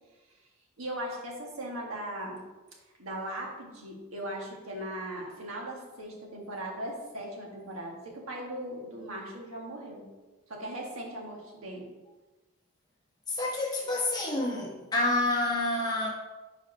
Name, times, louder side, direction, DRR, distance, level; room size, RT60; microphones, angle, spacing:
voice 1, 0.8-2.4 3.0-10.0 10.5-11.9, right 1 dB, 85° right, 1.5 m, -38 dB
voice 2, 13.3-16.1, left 2 dB, 20° left, 1.1 m, -28 dB
4.8 x 4.4 x 5.3 m
head